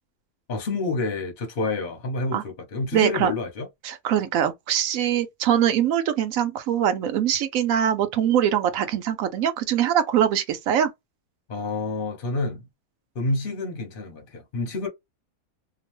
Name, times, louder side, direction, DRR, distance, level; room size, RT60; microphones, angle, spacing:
voice 1, 0.5-3.7 11.5-12.6 13.1-14.9, left 2 dB, 45° left, 0.7 m, -28 dB
voice 2, 2.9-3.3 3.8-10.9, right 9 dB, 65° right, 0.9 m, -23 dB
2.9 x 2.0 x 3.0 m
omnidirectional pair, 1.7 m